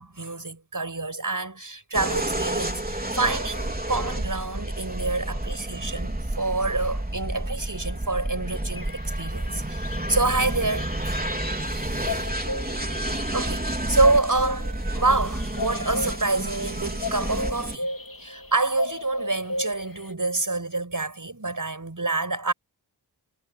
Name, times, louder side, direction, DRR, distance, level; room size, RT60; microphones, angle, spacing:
voice 1, 0.0-11.2 11.7-12.3 13.1-17.9 18.2-22.5, right 3 dB, 50° right, 7.2 m, -27 dB
sound 1, 1.9-17.8, right 1 dB, 20° right, 4.2 m, -30 dB
sound 2, 8.7-20.1, left 2 dB, 55° left, 2.6 m, -36 dB
wide cardioid pair, 50°, 42 cm